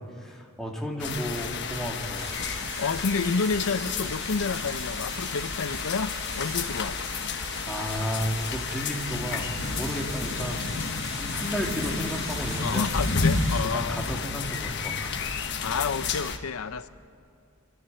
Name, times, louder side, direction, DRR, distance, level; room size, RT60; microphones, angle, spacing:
voice 1, 0.0-2.4 6.4-6.9 7.6-10.7 11.1-12.9 13.7-15.1, equal, ahead, -1 dB, 2.3 m, -33 dB
sound 1, 1.0-16.4, left 4 dB, 55° left, 1.3 m, -31 dB
sound 2, 2.1-13.6, right 4 dB, 85° right, 6.3 m, -42 dB
voice 2, 2.8-7.0 12.6-14.0 15.6-16.9, left 5 dB, 90° left, 13 dB, 0.6 m, -29 dB
26.5 x 13.0 x 9.6 m, 2.4 s
head